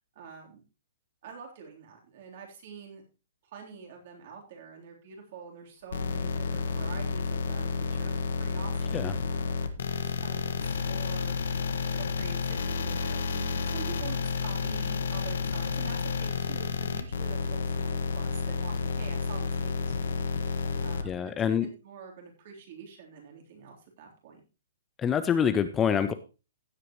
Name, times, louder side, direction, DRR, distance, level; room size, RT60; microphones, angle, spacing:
voice 1, 0.1-0.6 1.2-3.0 3.4-11.3 12.0-21.3 21.6-24.4, right 6 dB, 45° right, 1 dB, 3.5 m, -47 dB
sound 1, 5.9-21.0, left 4 dB, 75° left, 1.5 m, -31 dB
voice 2, 21.0-21.7 25.0-26.1, left 8 dB, 15° left, 11 dB, 0.5 m, -26 dB
15.5 x 8.2 x 3.1 m, 0.30 s
hypercardioid pair, 170°, 0 cm